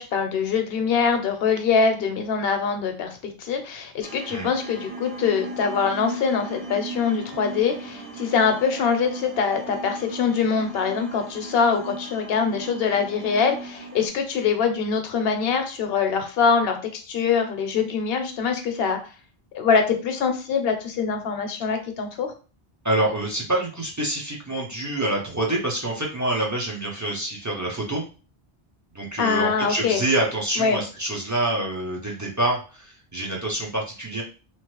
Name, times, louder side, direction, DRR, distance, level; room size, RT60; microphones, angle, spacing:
voice 1, 0.0-19.0 19.5-22.3 29.2-30.0 30.6-30.8, left 6 dB, 70° left, 6 dB, 0.8 m, -23 dB
sound 1, 4.0-14.1, right 3 dB, 70° right, 1.0 m, -37 dB
voice 2, 22.8-28.0 28.9-34.2, right 1 dB, 25° right, -2 dB, 0.5 m, -26 dB
2.9 x 2.0 x 3.0 m, 0.35 s
omnidirectional pair, 1.0 m